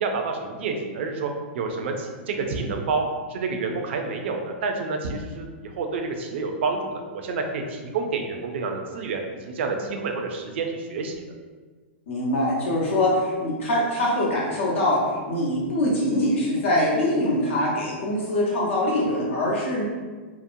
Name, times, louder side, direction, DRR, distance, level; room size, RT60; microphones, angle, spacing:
voice 1, 0.0-3.0 3.3-11.1, right 4 dB, 70° right, 3 dB, 0.4 m, -29 dB
voice 2, 12.1-19.8, left 1 dB, 80° left, -4 dB, 0.9 m, -23 dB
2.8 x 2.0 x 2.5 m, 1.4 s
hypercardioid pair, 135°, 6 cm